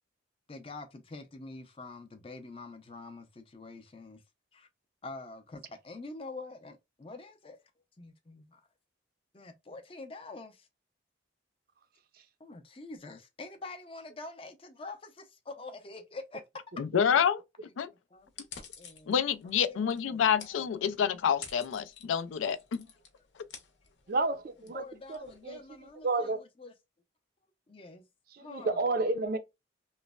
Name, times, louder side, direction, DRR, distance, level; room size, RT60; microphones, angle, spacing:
voice 1, 0.5-4.2 4.5-4.7 5.0-7.6 8.0-8.6 9.3-10.7 12.4-16.4 17.6-17.7 18.1-18.5 18.8-19.1 19.7-20.8 24.7-26.7 27.7-28.1 28.4-28.9, left 3 dB, 30° left, 0.5 m, -46 dB
voice 2, 16.8-17.4 17.8-17.9 19.1-22.9, left 8 dB, 85° left, 0.4 m, -28 dB
sound 1, 18.3-26.0, left 7 dB, 65° left, 0.8 m, -51 dB
voice 3, 24.1-24.8 25.1-25.6 26.0-26.4 28.3-29.4, right 3 dB, 50° right, 0.4 m, -30 dB
3.1 x 2.0 x 2.3 m
head